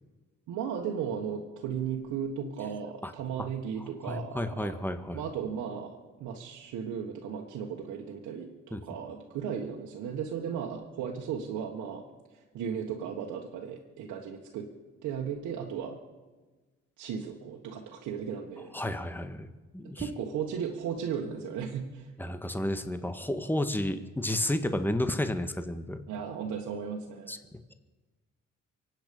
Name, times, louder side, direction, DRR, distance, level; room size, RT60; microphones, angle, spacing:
voice 1, 0.5-4.8 5.1-12.0 12.3-14.7 15.0-16.0 17.0-18.7 19.8-22.1 26.1-27.4, right 7 dB, 85° right, 0 dB, 1.6 m, -36 dB
voice 2, 4.0-5.2 8.7-8.8 18.7-19.5 19.7-20.1 22.2-26.0 27.3-27.4, left 1 dB, 5° left, 9 dB, 1.6 m, -31 dB
24.5 x 9.3 x 5.3 m, 1.2 s
supercardioid pair, 55°, 29 cm